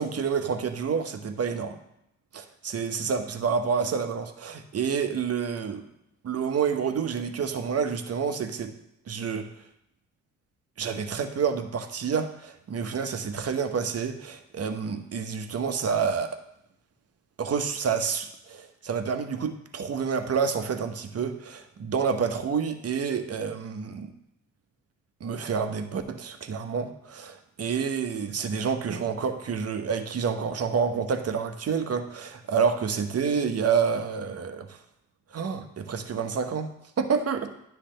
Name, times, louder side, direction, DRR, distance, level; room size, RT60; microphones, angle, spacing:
voice 1, 0.0-1.8 2.3-5.9 6.2-8.7 9.1-9.5 10.8-16.4 17.4-24.1 25.2-34.8 35.3-36.7 37.0-37.5, right 6 dB, 40° right, 7 dB, 1.0 m, -28 dB
10.0 x 3.4 x 6.5 m, 0.79 s
hypercardioid pair, 50°, 37 cm